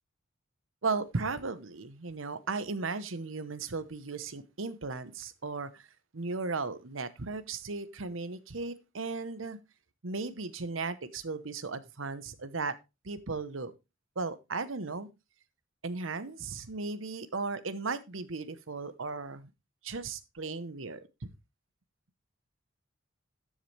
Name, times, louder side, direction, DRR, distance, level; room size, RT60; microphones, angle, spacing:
voice 1, 0.8-5.9 6.1-9.6 10.0-12.7 13.0-13.7 14.2-15.1 15.8-19.5 19.8-21.3, right 4 dB, 80° right, 1.0 m, -36 dB
12.5 x 7.4 x 3.3 m
head